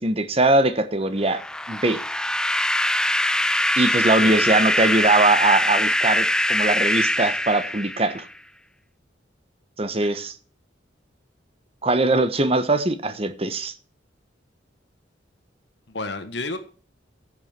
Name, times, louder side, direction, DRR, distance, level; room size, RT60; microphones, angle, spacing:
voice 1, 0.0-1.4 1.7-2.0 3.8-8.2 9.8-10.3 11.8-13.7, right 2 dB, 30° right, 1.1 m, -21 dB
sound 1, 1.3-8.3, left 1 dB, 5° left, 0.4 m, -23 dB
voice 2, 4.2-4.5 10.0-10.1 15.9-16.6, left 3 dB, 65° left, 1.4 m, -32 dB
16.0 x 7.2 x 4.4 m
head